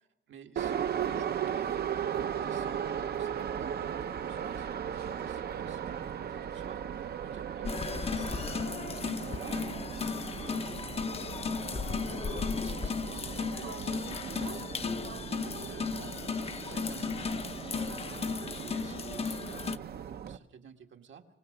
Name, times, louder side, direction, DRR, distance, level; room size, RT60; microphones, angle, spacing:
voice 1, 0.3-21.3, right 7 dB, 75° right, 4 dB, 1.9 m, -52 dB
Subway metro underground, 0.6-20.4, right 8 dB, 55° right, 0.7 m, -37 dB
sound 1, 7.6-19.8, left 5 dB, 30° left, 0.6 m, -35 dB
26.0 x 18.0 x 6.8 m, 1.0 s
wide cardioid pair, 170°, 20 cm